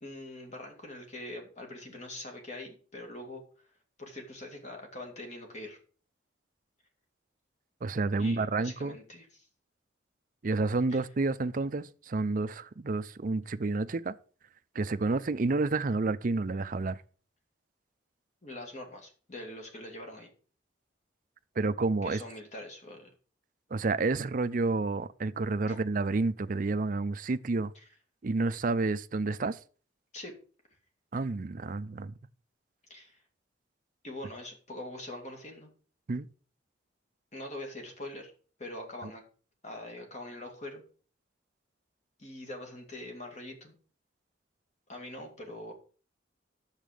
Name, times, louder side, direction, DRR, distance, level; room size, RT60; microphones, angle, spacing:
voice 1, 0.0-3.7 4.0-5.8 8.2-9.5 10.9-11.0 18.4-20.3 22.0-23.1 25.7-25.8 27.8-27.9 30.1-30.3 32.9-33.2 34.0-35.7 37.3-38.3 38.6-39.2 39.6-40.8 42.2-43.7 44.9-45.7, left 1 dB, 40° left, 2.2 m, -43 dB
voice 2, 7.8-9.0 10.4-14.1 14.8-17.0 21.6-22.2 23.7-27.7 28.2-29.6 31.1-32.1 36.1-36.3, right 3 dB, 45° right, 0.5 m, -30 dB
9.3 x 7.3 x 5.1 m
head